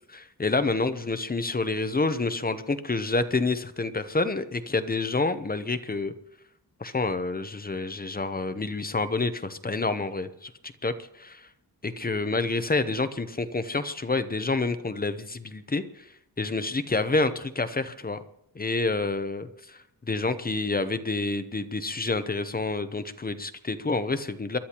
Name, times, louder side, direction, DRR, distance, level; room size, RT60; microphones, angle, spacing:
voice 1, 0.1-6.1 6.8-10.5 10.8-11.5 11.8-16.1 16.4-18.2 18.5-24.6, left 3 dB, 25° left, 11 dB, 0.7 m, -28 dB
28.5 x 11.5 x 2.9 m, 0.75 s
wide cardioid pair, 130°, 40 cm